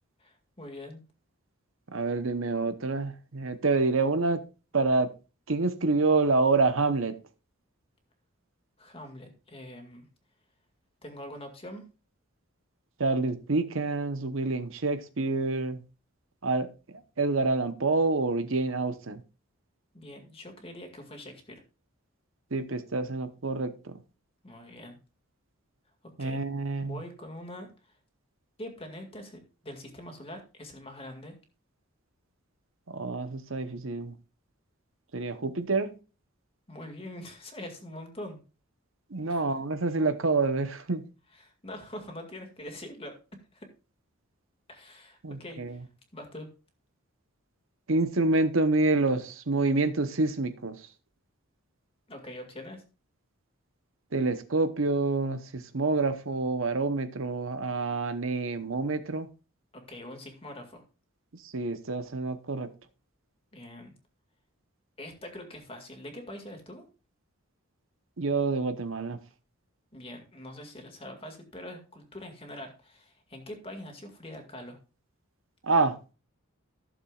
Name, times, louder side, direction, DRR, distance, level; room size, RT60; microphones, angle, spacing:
voice 1, 0.2-1.0 8.8-10.1 11.0-11.8 19.9-21.6 24.4-25.0 26.2-26.4 26.8-28.0 28.6-31.4 36.7-38.4 39.3-39.6 41.3-43.2 43.5-43.7 44.7-45.9 46.1-46.5 52.1-52.8 59.7-60.8 63.5-63.9 65.0-66.9 69.9-74.8, left 1 dB, 25° left, 2.1 m, -44 dB
voice 2, 1.9-4.4 4.7-5.1 5.5-7.1 13.0-15.8 16.4-16.7 17.2-19.2 22.5-23.9 26.2-27.0 32.9-34.1 35.1-35.9 39.1-41.0 45.2-45.8 47.9-50.8 54.1-59.3 61.5-62.7 68.2-69.2 75.6-76.0, right 3 dB, 65° right, 1.0 m, -27 dB
15.0 x 7.1 x 2.4 m
head